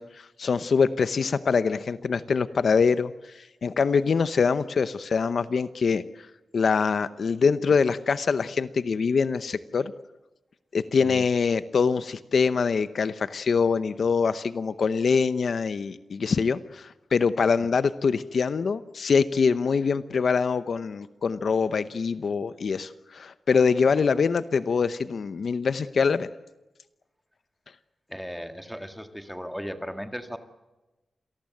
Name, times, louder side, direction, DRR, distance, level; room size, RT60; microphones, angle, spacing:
voice 1, 0.0-6.0 6.5-9.9 10.7-26.3, left 5 dB, 60° left, 13 dB, 0.8 m, -24 dB
voice 2, 28.1-30.4, equal, ahead, 7 dB, 1.9 m, -36 dB
27.5 x 19.0 x 7.8 m, 1.1 s
wide cardioid pair, 165°, 0 cm